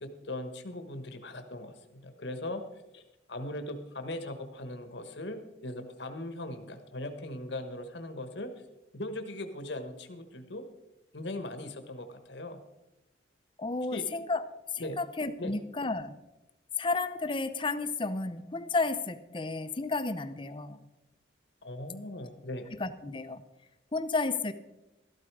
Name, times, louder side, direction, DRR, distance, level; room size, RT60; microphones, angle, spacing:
voice 1, 0.0-2.6 2.9-3.0 3.3-8.5 8.9-10.6 11.1-12.6 13.9-14.0 14.8-15.0 15.4-15.5 21.6-22.7, left 1 dB, 70° left, 7 dB, 1.2 m, -39 dB
voice 2, 13.6-14.4 14.7-16.1 16.8-20.9 22.8-23.4 23.9-24.5, left 3 dB, 25° left, 11 dB, 0.6 m, -32 dB
13.0 x 12.0 x 4.7 m, 0.97 s
head